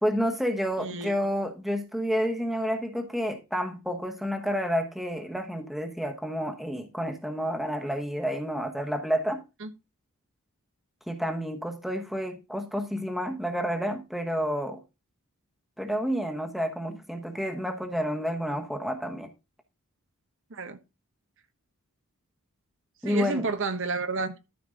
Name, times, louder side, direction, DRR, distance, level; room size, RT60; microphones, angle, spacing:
voice 1, 0.0-9.4 11.1-14.8 15.8-19.3 23.0-23.5, equal, ahead, 1.1 m, -30 dB
voice 2, 0.8-1.1 9.6-9.7 20.5-20.8 23.0-24.3, right 3 dB, 60° right, 1.0 m, -30 dB
13.0 x 5.2 x 3.8 m
head